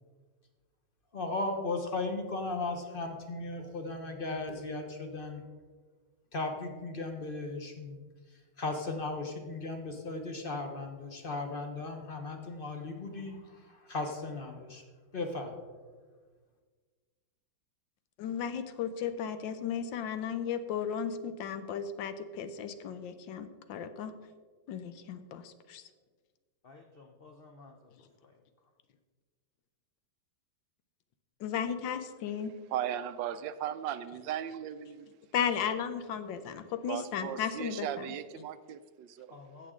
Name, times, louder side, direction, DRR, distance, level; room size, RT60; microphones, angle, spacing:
voice 1, 1.1-5.4 6.3-8.0 8.6-13.4 13.6-14.8 15.1-15.5, left 2 dB, 35° left, 0.9 m, -36 dB
voice 2, 18.2-24.1 24.7-25.8 31.4-32.5 35.3-38.0, left 7 dB, 80° left, 1.4 m, -35 dB
voice 3, 26.6-28.4 39.3-39.7, left 3 dB, 60° left, 0.6 m, -54 dB
voice 4, 32.7-35.1 36.9-39.3, right 10 dB, 80° right, 1.3 m, -37 dB
15.5 x 6.6 x 3.7 m
omnidirectional pair, 2.0 m